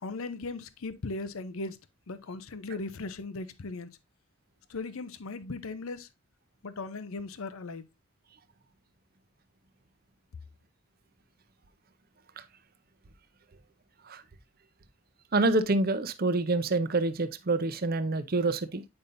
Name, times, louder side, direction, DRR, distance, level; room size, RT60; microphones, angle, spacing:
voice 1, 0.0-1.8 2.1-3.9 4.7-6.1 6.6-7.9, left 3 dB, 75° left, 0.6 m, -38 dB
voice 2, 15.3-18.9, right 2 dB, 45° right, 0.6 m, -27 dB
8.7 x 5.4 x 2.6 m
head